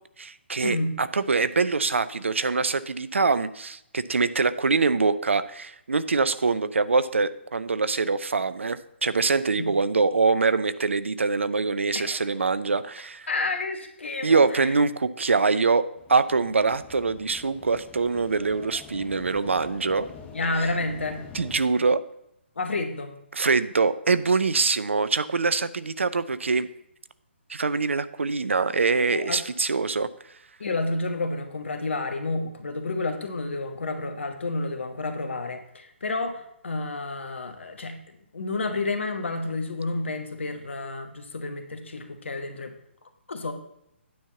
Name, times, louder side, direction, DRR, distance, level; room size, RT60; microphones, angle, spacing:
voice 1, 0.2-13.3 14.2-20.1 21.3-22.0 23.3-26.7 27.5-30.1, right 4 dB, 75° right, 14 dB, 0.5 m, -24 dB
voice 2, 11.9-12.3 13.3-14.7 20.3-21.2 22.6-23.2 29.1-29.4 30.6-38.0 38.3-42.7 43.3-43.5, left 2 dB, 70° left, 6 dB, 1.3 m, -30 dB
sound 1, 16.0-21.6, left 6 dB, 20° left, 0.8 m, -46 dB
9.4 x 4.6 x 7.0 m, 0.78 s
figure-of-eight pair, 135°, 7 cm